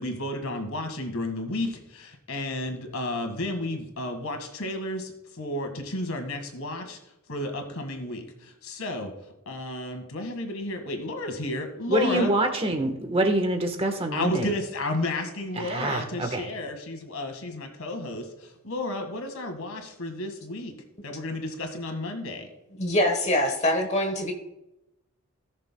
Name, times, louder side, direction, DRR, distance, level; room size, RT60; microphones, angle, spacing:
voice 1, 0.0-7.0 7.3-9.1 9.5-12.3 14.1-20.7 21.0-22.5, left 2 dB, 75° left, 5 dB, 1.8 m, -32 dB
voice 2, 11.9-14.5 15.5-16.5, right 1 dB, 25° right, 5 dB, 1.2 m, -25 dB
voice 3, 22.8-24.3, left 1 dB, 30° left, 4 dB, 1.1 m, -24 dB
18.0 x 6.6 x 2.2 m, 0.92 s
head